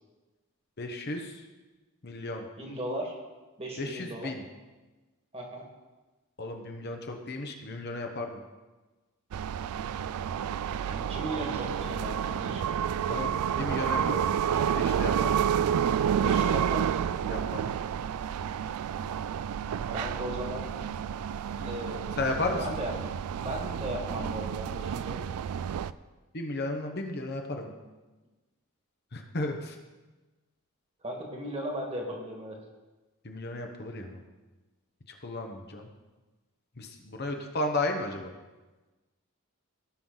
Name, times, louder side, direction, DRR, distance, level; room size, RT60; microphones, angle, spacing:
voice 1, 0.8-1.4 2.0-2.5 3.8-4.4 6.4-8.4 13.1-14.3 14.7-15.3 17.3-17.6 22.2-22.6 26.3-27.7 29.1-29.8 33.2-34.2 35.2-35.9 36.8-38.3, left 2 dB, 45° left, 3 dB, 1.0 m, -34 dB
voice 2, 2.6-3.2 3.6-4.4 5.3-5.6 10.8-12.6 16.2-17.0 19.9-20.7 21.6-22.9 23.4-25.2 31.0-32.6, equal, 25° right, 0 dB, 1.8 m, -37 dB
sound 1, 9.3-25.9, right 8 dB, 85° right, 0.3 m, -30 dB
17.0 x 5.9 x 4.0 m, 1.2 s
head